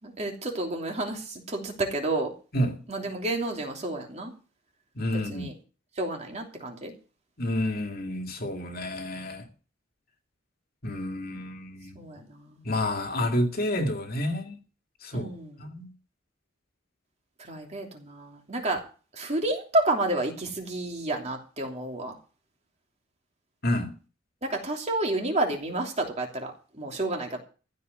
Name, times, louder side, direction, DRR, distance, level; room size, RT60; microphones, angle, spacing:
voice 1, 0.0-2.3 2.9-4.3 5.1-5.5 6.0-6.9 11.9-12.6 15.1-15.6 17.4-18.8 19.1-22.1 24.4-27.4, right 2 dB, 35° right, 3.0 m, -30 dB
voice 2, 5.0-5.5 7.4-9.5 10.8-12.0 12.6-14.6 15.0-15.3 15.6-15.9 23.6-23.9, left 1 dB, 50° left, 2.3 m, -29 dB
15.0 x 5.6 x 9.3 m
head